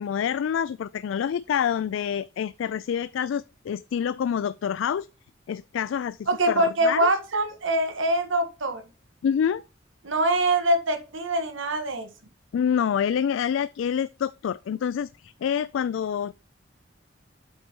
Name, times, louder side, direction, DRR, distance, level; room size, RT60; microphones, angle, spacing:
voice 1, 0.0-5.1 5.5-7.1 9.2-9.6 12.5-16.3, left 8 dB, 85° left, 0.3 m, -27 dB
voice 2, 6.3-8.8 10.0-12.1, right 1 dB, 85° right, 1.7 m, -24 dB
8.1 x 4.6 x 4.5 m
head